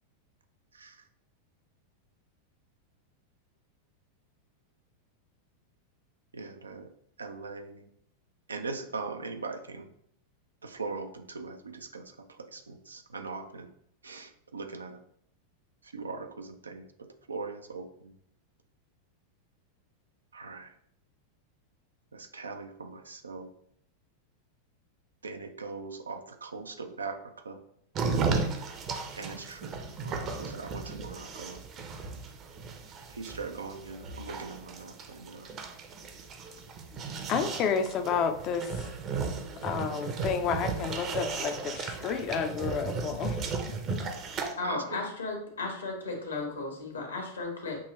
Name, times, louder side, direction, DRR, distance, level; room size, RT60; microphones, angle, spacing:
voice 1, 0.7-1.0 6.3-6.9 7.2-7.8 8.5-9.9 10.6-13.7 14.0-15.0 15.8-18.2 20.3-20.7 22.1-23.5 25.2-27.2 27.4-27.6 29.2-31.6 33.1-35.5 44.6-45.0, right 4 dB, 75° right, 6 dB, 0.5 m, -40 dB
sound 1, 27.9-44.5, right 4 dB, 30° right, 0.7 m, -35 dB
voice 2, 37.3-38.8 39.6-43.5 43.9-44.0, left 6 dB, 35° left, 7 dB, 0.5 m, -30 dB
voice 3, 44.6-47.8, left 3 dB, 70° left, 2 dB, 1.3 m, -35 dB
6.0 x 2.9 x 3.0 m, 0.70 s
figure-of-eight pair, 90°, 0 cm